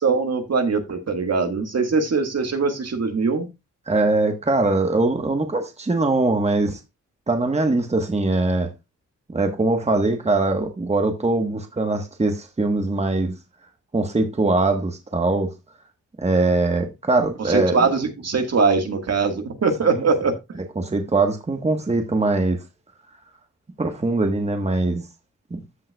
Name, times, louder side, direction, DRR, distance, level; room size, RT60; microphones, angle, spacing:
voice 1, 0.0-3.5 17.5-20.3, right 4 dB, 55° right, 1.6 m, -21 dB
voice 2, 3.9-6.8 7.3-8.7 9.3-13.4 13.9-15.5 16.2-17.8 19.9-20.0 20.8-22.6 23.8-25.1 25.5-25.6, right 2 dB, 20° right, 1.2 m, -22 dB
14.0 x 5.4 x 2.3 m
wide cardioid pair, 100°, 31 cm